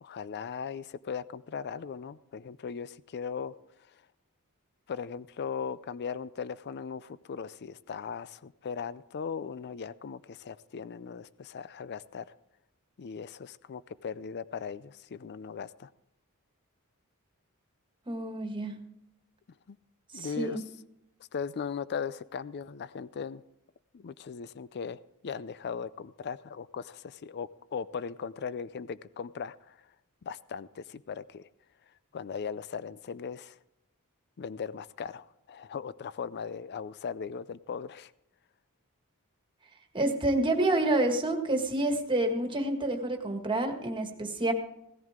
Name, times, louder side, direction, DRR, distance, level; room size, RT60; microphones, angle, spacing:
voice 1, 0.0-3.5 4.9-12.3 13.0-15.9 19.7-19.8 20.1-20.6 21.3-23.4 23.9-29.8 30.2-31.5 32.1-33.6 34.4-38.1, left 6 dB, 50° left, 17 dB, 0.4 m, -38 dB
voice 2, 18.1-18.8 20.1-20.6 39.9-44.5, right 2 dB, 20° right, 4 dB, 1.7 m, -28 dB
17.5 x 14.0 x 3.7 m, 0.84 s
head